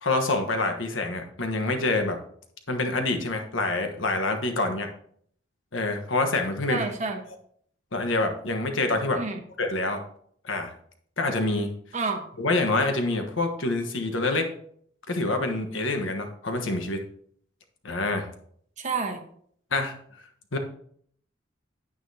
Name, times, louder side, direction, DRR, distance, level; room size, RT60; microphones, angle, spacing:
voice 1, 0.0-2.2 2.7-4.9 5.7-6.9 7.9-9.2 9.6-10.0 10.4-10.7 11.2-11.7 12.4-14.5 15.1-17.0 17.8-18.3 19.7-19.9 20.5-20.6, left 2 dB, 80° left, 5 dB, 1.3 m, -26 dB
voice 2, 6.7-7.2 9.2-9.4 11.9-12.3 18.8-19.2, right 4 dB, 40° right, 4 dB, 1.2 m, -29 dB
9.5 x 8.9 x 2.8 m, 0.63 s
head